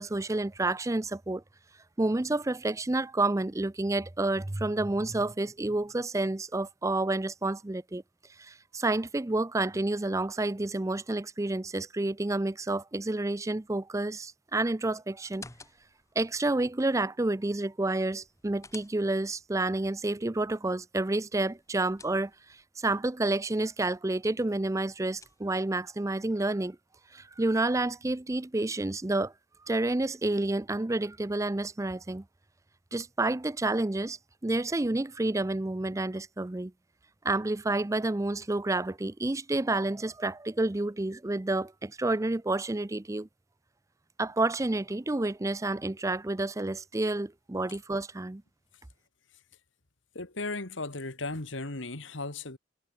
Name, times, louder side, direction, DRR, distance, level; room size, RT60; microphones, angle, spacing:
voice 1, 0.0-1.4 2.0-8.0 8.4-15.5 16.2-22.3 22.8-26.8 27.1-29.3 29.7-32.2 32.9-36.7 37.2-43.3 44.2-48.4, right 2 dB, 15° right, 0.5 m, -29 dB
sound 1, 15.2-16.1 18.1-19.4 21.4-22.6 24.6-25.7, left 4 dB, 15° left, 2.9 m, -52 dB
voice 2, 50.1-52.6, left 2 dB, 70° left, 2.3 m, -36 dB
head